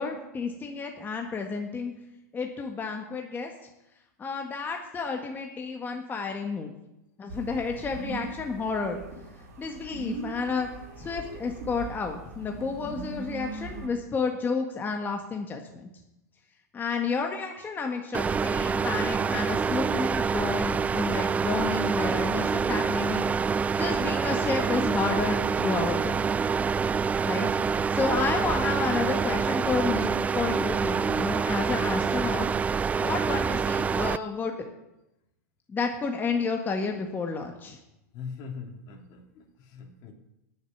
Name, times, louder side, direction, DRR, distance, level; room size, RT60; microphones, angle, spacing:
voice 1, 0.0-1.9 2.3-3.5 4.2-6.7 7.2-9.0 9.6-10.7 11.0-15.9 16.7-23.2 23.8-26.2 27.2-27.5 27.9-32.5 33.0-34.5 35.7-37.8, left 4 dB, 20° left, 3 dB, 1.6 m, -31 dB
sound 1, 7.3-13.9, right 3 dB, 60° right, 2.9 m, -40 dB
sound 2, 18.1-34.2, right 5 dB, 15° right, 0.3 m, -26 dB
voice 2, 38.1-39.4 39.7-40.1, left 5 dB, 45° left, 2 dB, 3.0 m, -41 dB
9.7 x 8.0 x 9.3 m, 0.90 s
hypercardioid pair, 100°, 10 cm